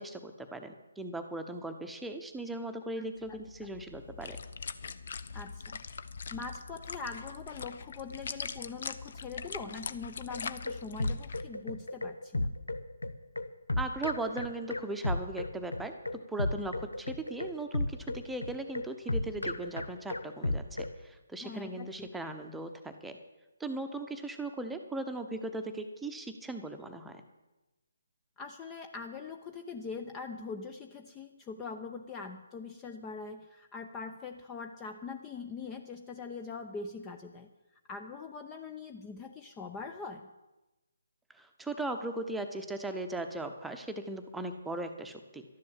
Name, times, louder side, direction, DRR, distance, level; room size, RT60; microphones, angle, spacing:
voice 1, 0.0-4.4 13.8-15.9 16.3-23.2 23.6-27.2 41.3-45.4, right 2 dB, 5° right, 5 dB, 1.0 m, -38 dB
voice 2, 3.0-3.4 5.3-5.8 6.3-12.6 21.4-22.1 28.4-37.5 37.9-40.3, left 4 dB, 15° left, 5 dB, 0.7 m, -42 dB
sound 1, 3.2-11.4, left 5 dB, 50° left, 0.8 m, -42 dB
sound 2, 10.3-21.0, left 2 dB, 80° left, 0.9 m, -34 dB
12.5 x 10.5 x 7.5 m, 1.0 s
figure-of-eight pair, 145°, 0 cm